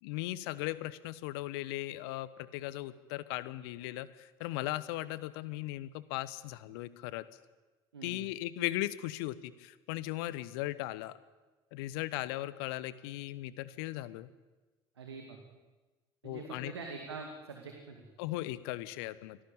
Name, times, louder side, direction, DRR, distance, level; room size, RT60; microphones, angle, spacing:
voice 1, 0.0-7.2 8.0-11.2 11.7-14.3 16.2-16.7 18.2-19.4, left 16 dB, 70° left, 17 dB, 1.2 m, -38 dB
voice 2, 15.0-15.4 16.2-18.0, right 4 dB, 85° right, 3 dB, 2.4 m, -44 dB
24.5 x 17.5 x 8.9 m, 1.2 s
figure-of-eight pair, 55°, 13 cm